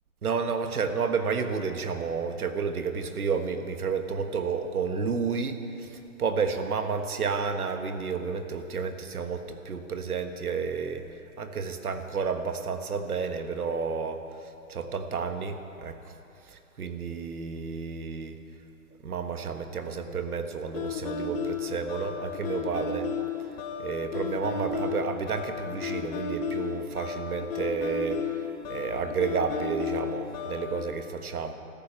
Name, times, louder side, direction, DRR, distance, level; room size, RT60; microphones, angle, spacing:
voice 1, 0.2-11.0 11.4-14.2 14.7-16.0 16.5-18.4 19.0-23.1 23.8-28.2 28.7-31.5, right 5 dB, 80° right, 7 dB, 1.5 m, -31 dB
sound 1, 20.7-30.8, left 6 dB, 40° left, 2.3 m, -33 dB
14.0 x 11.0 x 8.7 m, 2.7 s
hypercardioid pair, 135°, 44 cm